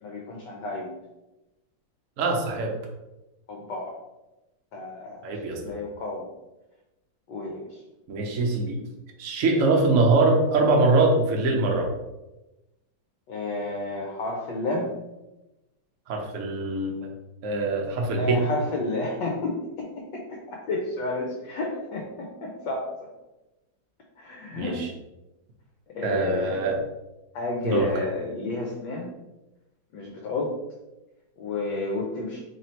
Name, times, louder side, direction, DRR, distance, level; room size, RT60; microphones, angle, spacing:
voice 1, 0.0-1.0 3.5-4.0 4.7-6.3 7.3-7.8 13.3-14.9 18.2-23.1 24.2-24.8 25.9-26.6 27.3-29.1 29.9-30.6 31.4-32.4, left 2 dB, 70° left, -1 dB, 1.2 m, -31 dB
voice 2, 2.2-2.7 5.2-5.6 8.1-8.8 9.2-11.9 16.1-17.1 17.4-18.4 24.6-24.9 26.0-26.8 27.6-27.9, right 3 dB, 60° right, 1 dB, 0.8 m, -23 dB
3.3 x 2.7 x 4.3 m, 1.0 s
omnidirectional pair, 2.1 m